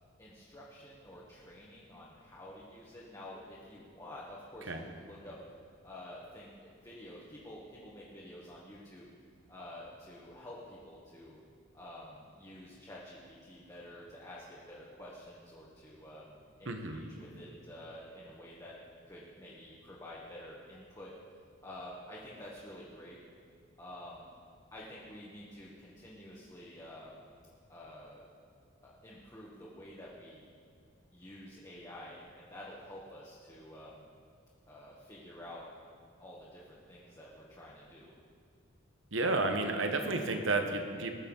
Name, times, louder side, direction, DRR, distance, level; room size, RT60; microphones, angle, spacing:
voice 1, 0.2-5.4 5.8-9.1 9.5-11.4 11.7-18.8 19.0-21.1 21.6-23.2 23.8-24.3 24.7-27.2 27.7-28.2 28.8-30.4 31.1-34.0 34.7-35.6 36.2-38.1, left 1 dB, 15° left, -6 dB, 1.5 m, -49 dB
voice 2, 16.7-17.0 39.1-41.1, right 2 dB, 65° right, 5 dB, 1.2 m, -31 dB
19.5 x 7.0 x 5.5 m, 2.2 s
head